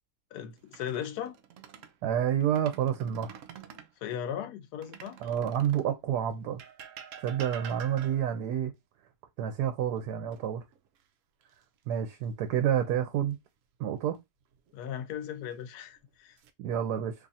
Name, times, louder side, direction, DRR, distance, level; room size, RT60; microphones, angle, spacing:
voice 1, 0.3-1.3 4.0-5.2 14.7-16.4, left 9 dB, 90° left, 1.1 m, -37 dB
sound 1, 0.6-2.0 2.4-3.9 4.8-6.0 6.6-8.4 10.3-11.0 11.4-11.6 14.5-15.1 15.9-16.5, right 8 dB, 70° right, 0.8 m, -47 dB
voice 2, 2.0-3.4 5.2-6.6 7.2-8.7 9.4-10.6 11.9-13.4 13.8-14.2 16.6-17.1, right 9 dB, 85° right, 1.1 m, -29 dB
2.9 x 2.4 x 4.0 m
omnidirectional pair, 1.7 m